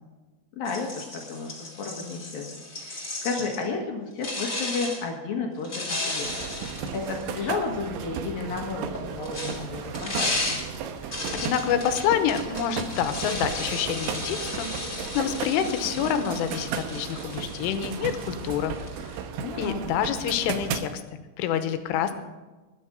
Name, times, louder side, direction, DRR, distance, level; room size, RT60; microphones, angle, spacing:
voice 1, 0.6-6.3 6.7-10.6 19.4-19.8, left 4 dB, 60° left, 1 dB, 2.9 m, -32 dB
sound 1, 0.6-3.7 4.2-5.0 5.6-7.8 8.8-19.2, left 2 dB, 25° left, 1.6 m, -35 dB
sound 2, 6.2-20.8, right 7 dB, 75° right, 2.8 m, -35 dB
voice 2, 11.1-18.8 19.6-20.9 21.4-22.1, left 9 dB, 90° left, 9 dB, 3.5 m, -27 dB
21.0 x 9.8 x 5.3 m, 1.2 s
omnidirectional pair, 5.7 m